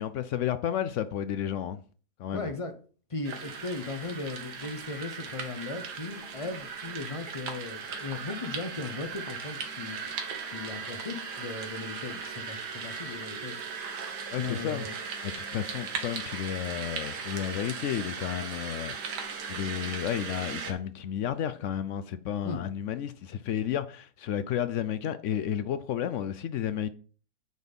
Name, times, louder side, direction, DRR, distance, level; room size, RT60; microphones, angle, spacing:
voice 1, 0.0-1.8 2.2-2.5 14.3-14.9 15.2-18.9 19.5-26.9, left 10 dB, 80° left, 0.6 m, -32 dB
voice 2, 2.3-2.7 3.1-10.0 10.5-13.6 14.4-14.9 22.4-22.6, left 3 dB, 35° left, 0.5 m, -37 dB
sound 1, 3.2-20.7, right 5 dB, 70° right, 1.8 m, -38 dB
9.4 x 4.2 x 5.3 m
omnidirectional pair, 1.9 m